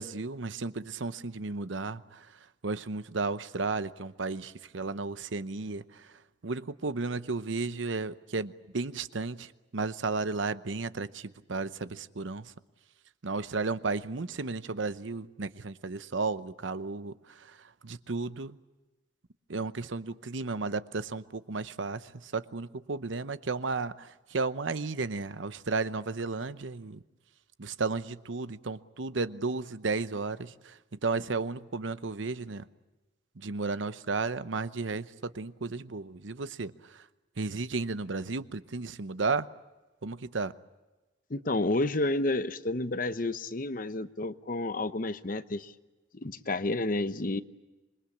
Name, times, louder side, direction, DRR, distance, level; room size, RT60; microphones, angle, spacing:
voice 1, 0.0-2.3 2.6-6.1 6.4-12.5 13.2-17.6 17.8-18.6 19.5-27.0 27.6-32.6 33.4-37.0 37.4-39.5 40.0-40.5, right 3 dB, 85° right, 13 dB, 0.8 m, -34 dB
voice 2, 41.3-45.7 46.1-47.4, left 2 dB, 45° left, 12 dB, 0.8 m, -30 dB
27.0 x 22.0 x 8.6 m, 1.2 s
head